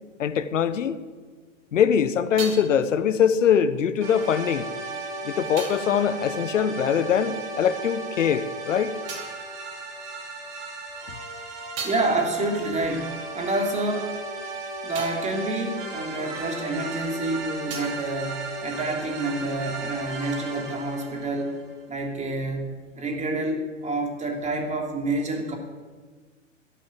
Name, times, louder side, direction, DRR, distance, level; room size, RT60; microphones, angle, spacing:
voice 1, 0.2-1.0 1.7-4.7 5.2-8.9, left 8 dB, 75° left, 13 dB, 1.2 m, -22 dB
sound 1, 1.5-7.6 7.8-10.5 10.9-16.9 17.2-19.2, right 5 dB, 40° right, 4.7 m, -43 dB
sound 2, 4.0-21.8, right 2 dB, 70° right, 4.0 m, -35 dB
voice 2, 11.8-14.2 14.8-21.6 21.9-25.6, right 2 dB, 20° right, 2 dB, 3.0 m, -28 dB
14.0 x 11.0 x 7.6 m, 1.4 s
hypercardioid pair, 105°, 38 cm